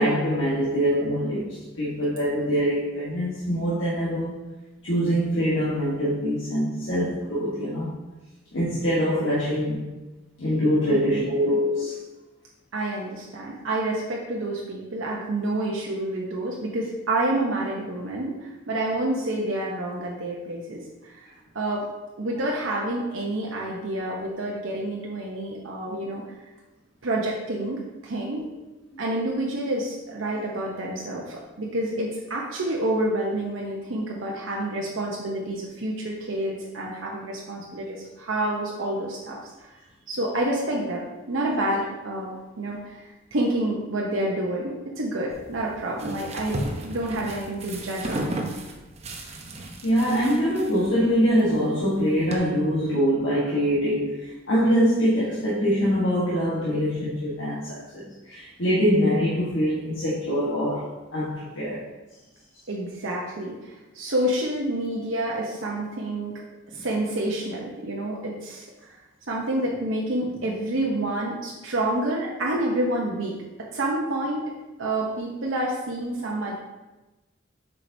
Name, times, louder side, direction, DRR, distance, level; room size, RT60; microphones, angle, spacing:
voice 1, 0.0-4.4 4.8-8.0 8.5-9.9 10.4-12.1 49.8-61.9, equal, 70° left, -8 dB, 1.3 m, -24 dB
voice 2, 10.8-11.3 12.7-21.3 21.5-21.9 22.2-26.2 27.0-28.5 29.0-39.7 40.1-41.0 41.3-42.3 42.6-48.5 62.7-66.4 66.7-69.0 69.3-73.4 73.7-74.4 74.8-76.5, right 1 dB, 80° right, -3 dB, 0.8 m, -28 dB
sound 1, 45.3-52.4, right 1 dB, 35° right, 0.7 m, -35 dB
7.5 x 4.7 x 2.7 m, 1.1 s
head